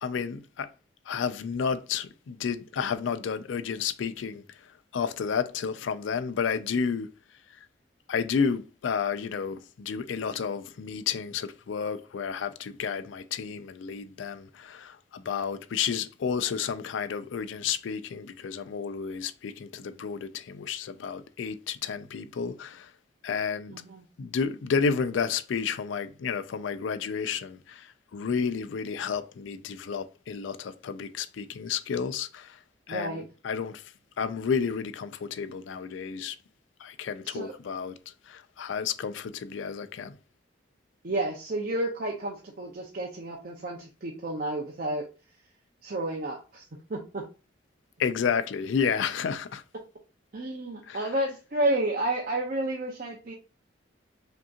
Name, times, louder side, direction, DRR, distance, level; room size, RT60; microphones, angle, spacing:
voice 1, 0.0-0.7 1.1-7.1 8.1-22.9 23.2-23.8 24.2-32.6 32.9-33.9 34.2-36.4 36.8-38.0 38.3-40.2 48.0-49.6 50.8-51.1, left 6 dB, 75° left, 0.4 m, -31 dB
voice 2, 23.7-24.0 32.9-33.2 37.3-37.5 41.0-45.1 45.8-46.6 46.9-47.2 50.3-53.3, right 1 dB, 50° right, 0.6 m, -31 dB
5.1 x 2.8 x 2.4 m
head